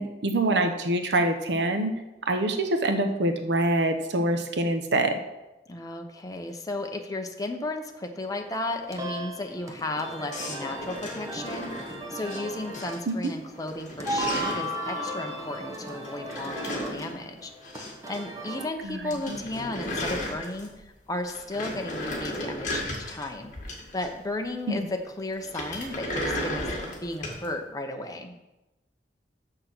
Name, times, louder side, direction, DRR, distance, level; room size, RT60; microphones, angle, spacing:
voice 1, 0.0-5.2 13.1-13.3 18.8-19.4 24.7-24.8, right 1 dB, 75° right, 6 dB, 0.9 m, -25 dB
voice 2, 5.7-11.7 12.1-17.5 18.1-20.7 21.1-23.5 23.9-28.3, left 2 dB, 20° left, 4 dB, 0.8 m, -34 dB
sound 1, 8.2-18.6, right 1 dB, 20° right, 1.0 m, -36 dB
sound 2, 10.3-12.4 12.7-13.3 13.6-14.7 16.0-18.2 18.4-18.5 18.8-18.9 19.1-20.9 21.2-24.3 25.4-27.5, left 1 dB, 45° left, 1.8 m, -35 dB
6.9 x 6.3 x 6.0 m, 1.0 s
head